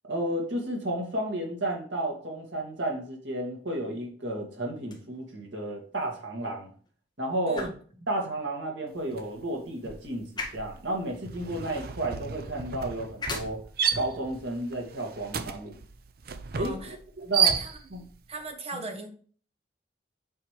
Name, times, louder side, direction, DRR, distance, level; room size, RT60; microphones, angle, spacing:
voice 1, 0.1-6.7 7.2-7.7 8.1-13.6 13.9-15.8 16.5-17.5 17.9-18.0 18.7-18.8, right 1 dB, 85° right, 2.2 m, -32 dB
sound 1, 4.7-16.8, left 3 dB, 25° left, 1.7 m, -45 dB
sound 2, 9.1-9.4 9.7-18.1, right 7 dB, 55° right, 0.6 m, -32 dB
voice 2, 16.6-16.9 17.4-18.0 18.3-19.1, right 2 dB, 35° right, 1.2 m, -37 dB
7.8 x 5.0 x 3.3 m
head